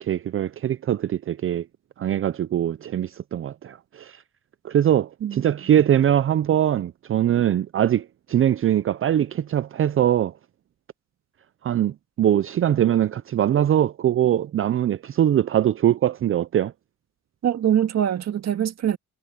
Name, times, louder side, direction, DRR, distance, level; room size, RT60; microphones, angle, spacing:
voice 1, 0.0-1.7 2.0-4.2 4.6-10.3 11.6-16.7, right 10 dB, 45° right, 0.5 m, -22 dB
voice 2, 17.4-19.0, right 10 dB, 60° right, 2.0 m, -23 dB
cardioid pair, 90°, 30 cm